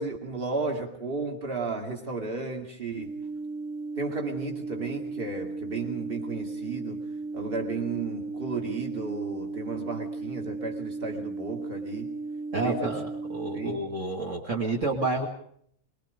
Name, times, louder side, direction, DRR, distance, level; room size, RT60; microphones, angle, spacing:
voice 1, 0.0-3.1 4.0-7.1 7.3-12.1 12.5-13.0 13.5-13.9, right 4 dB, 35° right, 2 dB, 2.7 m, -33 dB
sound 1, 2.9-13.8, right 3 dB, 70° right, 3.7 m, -36 dB
voice 2, 12.5-13.1 13.3-15.3, right 2 dB, 50° right, 0 dB, 2.5 m, -29 dB
23.5 x 22.0 x 5.1 m, 0.64 s
omnidirectional pair, 1.6 m